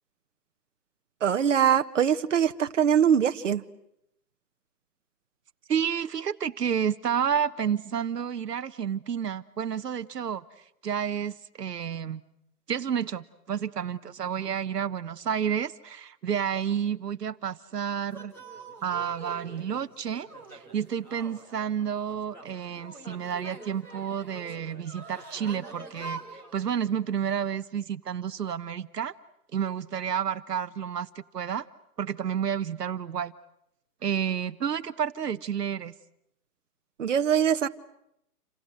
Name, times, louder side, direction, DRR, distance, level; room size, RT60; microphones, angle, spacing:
voice 1, 1.2-3.6 37.0-37.7, right 8 dB, 50° right, 8 dB, 1.4 m, -22 dB
voice 2, 5.7-10.4 10.8-12.2 12.7-18.3 18.8-26.2 26.5-29.1 29.5-31.7 32.0-33.3 34.0-35.9, right 8 dB, 75° right, 11 dB, 1.2 m, -30 dB
sound 1, 18.1-26.6, right 3 dB, 5° left, 1.9 m, -45 dB
28.5 x 27.0 x 7.8 m, 0.78 s
hypercardioid pair, 175°, 48 cm